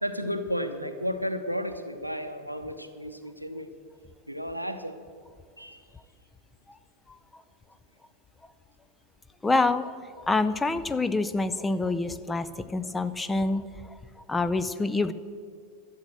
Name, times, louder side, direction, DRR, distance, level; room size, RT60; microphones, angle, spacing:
voice 1, 0.0-3.7 4.3-5.0 5.6-5.9, equal, 90° right, 8 dB, 0.8 m, -33 dB
voice 2, 9.4-9.9 10.3-13.6 14.3-15.1, left 3 dB, 10° left, 13 dB, 0.5 m, -26 dB
12.5 x 7.3 x 7.7 m, 2.1 s
figure-of-eight pair, 90°, 0 cm